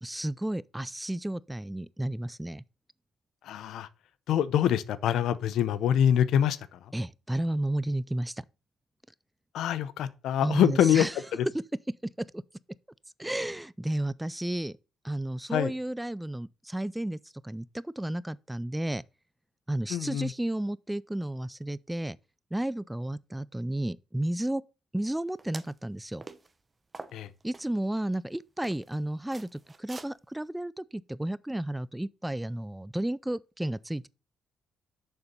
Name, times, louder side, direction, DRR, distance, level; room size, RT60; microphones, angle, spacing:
voice 1, 0.0-2.6 6.9-8.4 10.4-11.1 12.2-12.4 13.2-14.8 15.0-17.2 17.4-19.0 19.7-22.2 22.5-24.6 24.9-26.2 27.4-34.1, right 1 dB, 5° right, 0.3 m, -32 dB
voice 2, 3.4-3.9 4.3-6.8 9.5-11.1 11.3-11.5 15.5-15.7 19.9-20.3 27.1-27.3, left 9 dB, 80° left, 0.7 m, -25 dB
sound 1, 25.4-25.8 26.2-26.5 26.9-27.6 28.1-28.2 28.6-29.0 29.3-30.1, right 3 dB, 25° right, 0.8 m, -44 dB
6.9 x 6.8 x 5.4 m
cardioid pair, 90°, 0 cm